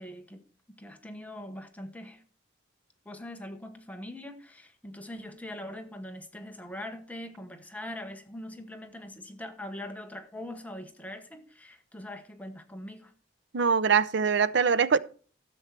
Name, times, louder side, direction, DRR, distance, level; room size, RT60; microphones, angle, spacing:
voice 1, 0.0-2.2 3.0-13.1, left 1 dB, 10° left, 1.0 m, -42 dB
voice 2, 13.5-15.0, right 6 dB, 60° right, 0.6 m, -23 dB
13.0 x 8.0 x 4.5 m
head